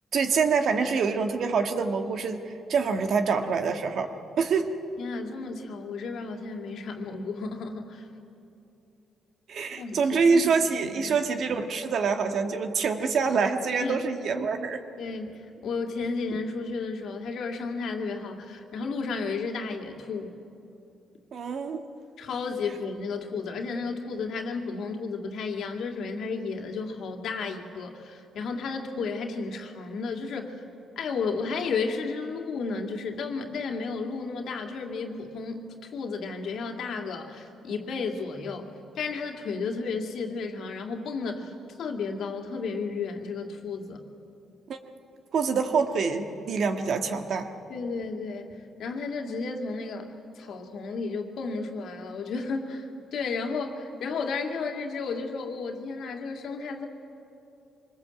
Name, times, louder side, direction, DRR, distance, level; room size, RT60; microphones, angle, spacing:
voice 1, 0.1-4.7 9.5-14.8 21.3-21.8 44.7-44.8 45.3-47.5, right 5 dB, 65° right, 6 dB, 1.6 m, -26 dB
voice 2, 5.0-8.1 9.7-10.0 10.9-11.2 13.8-14.0 15.0-20.3 22.2-30.6 31.0-38.7 39.0-44.0 47.7-48.5 48.8-56.9, left 4 dB, 75° left, 3 dB, 2.4 m, -33 dB
24.0 x 20.5 x 7.8 m, 2.7 s
cardioid pair, 75°, 0 cm